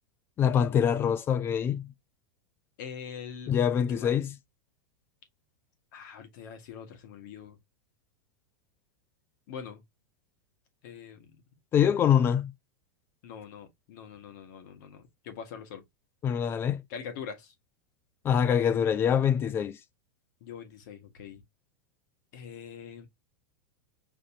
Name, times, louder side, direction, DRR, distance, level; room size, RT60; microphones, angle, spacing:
voice 1, 0.4-1.9 3.5-4.4 11.7-12.5 16.2-16.8 18.2-19.8, left 8 dB, 20° left, 0.4 m, -24 dB
voice 2, 2.8-3.5 3.9-4.2 5.9-7.6 9.5-9.8 10.8-11.4 12.2-12.3 13.2-15.8 16.9-17.5 20.4-21.4 22.3-23.1, left 7 dB, 55° left, 1.8 m, -43 dB
5.2 x 3.3 x 2.7 m
supercardioid pair, 150°, 11 cm